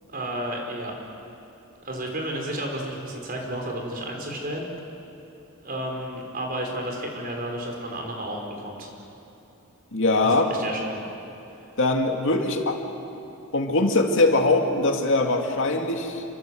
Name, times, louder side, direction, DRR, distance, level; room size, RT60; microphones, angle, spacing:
voice 1, 0.1-0.9 1.8-4.7 5.6-8.9 10.2-11.0, right 1 dB, 45° right, 1 dB, 5.3 m, -32 dB
voice 2, 9.9-10.5 11.8-12.8 13.5-16.2, left 2 dB, 65° left, 2 dB, 2.6 m, -22 dB
29.0 x 24.5 x 8.0 m, 2.9 s
head